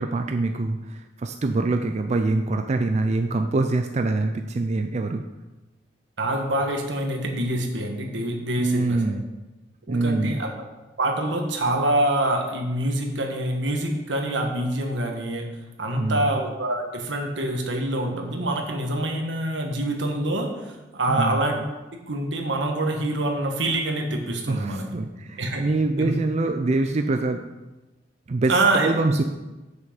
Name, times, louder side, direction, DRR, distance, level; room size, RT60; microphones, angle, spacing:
voice 1, 0.0-5.2 8.6-9.2 9.9-10.4 15.9-16.3 21.1-21.4 24.5-27.4 28.3-29.2, right 2 dB, 40° right, 6 dB, 0.4 m, -24 dB
voice 2, 6.2-9.0 9.9-10.5 11.0-15.5 15.8-21.5 22.0-24.9 25.4-25.7 26.0-26.2 28.5-28.9, right 1 dB, 80° right, 3 dB, 1.4 m, -25 dB
7.5 x 6.5 x 5.1 m, 1.1 s
head